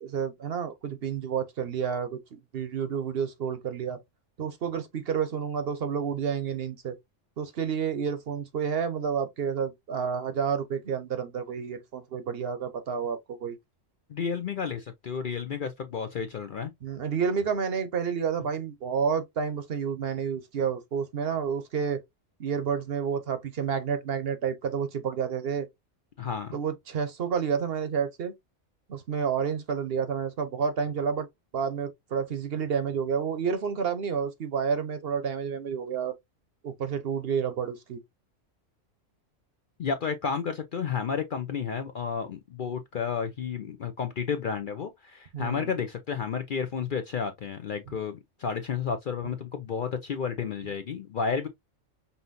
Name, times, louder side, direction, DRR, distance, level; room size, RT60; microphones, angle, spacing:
voice 1, 0.0-4.0 4.4-7.0 7.4-13.5 16.8-22.0 22.4-25.7 26.5-28.3 28.9-31.3 31.5-36.1 36.6-38.0 45.3-45.7, right 7 dB, 55° right, 0.9 m, -30 dB
voice 2, 14.1-16.7 26.2-26.6 39.8-51.5, left 6 dB, 55° left, 0.6 m, -31 dB
5.5 x 2.7 x 2.6 m
omnidirectional pair, 1.3 m